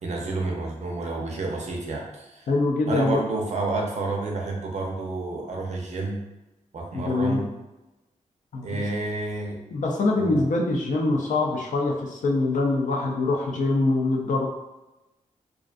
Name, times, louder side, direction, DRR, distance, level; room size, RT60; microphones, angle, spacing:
voice 1, 0.0-2.5 2.9-6.2 6.7-7.5 8.6-9.6 10.1-10.5, right 3 dB, 60° right, 0 dB, 0.5 m, -30 dB
voice 2, 2.5-3.2 6.9-7.5 8.5-8.7 9.7-14.5, left 2 dB, 70° left, 0 dB, 0.5 m, -24 dB
2.4 x 2.3 x 2.4 m, 1.0 s
wide cardioid pair, 175°, 13 cm